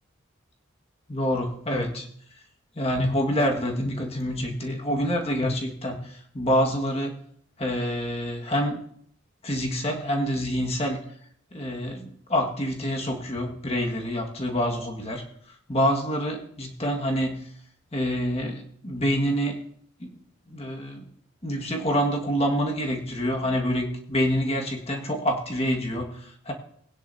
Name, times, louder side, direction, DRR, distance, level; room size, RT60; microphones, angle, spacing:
voice 1, 1.1-2.1 2.8-7.2 7.6-8.9 9.4-11.0 11.5-17.5 17.9-19.6 20.0-20.2 20.5-21.1 21.4-26.5, equal, 30° left, 0 dB, 1.8 m, -27 dB
20.5 x 10.0 x 2.8 m, 0.65 s
head